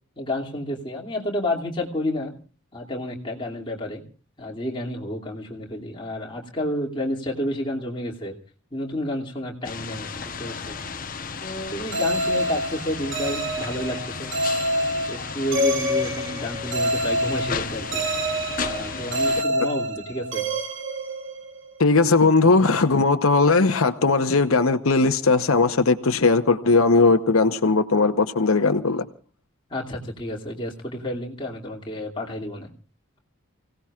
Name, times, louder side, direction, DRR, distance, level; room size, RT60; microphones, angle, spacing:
voice 1, 0.2-2.3 2.7-4.0 4.4-8.3 8.7-10.8 11.4-14.3 15.1-18.0 18.6-20.5 29.7-32.7, left 1 dB, 25° left, 2.6 m, -30 dB
sound 1, 9.6-19.4, left 5 dB, 40° left, 1.0 m, -34 dB
sound 2, 11.9-21.7, equal, 60° right, 2.5 m, -27 dB
voice 2, 21.8-29.0, left 3 dB, 80° left, 1.0 m, -18 dB
29.5 x 17.5 x 2.4 m
head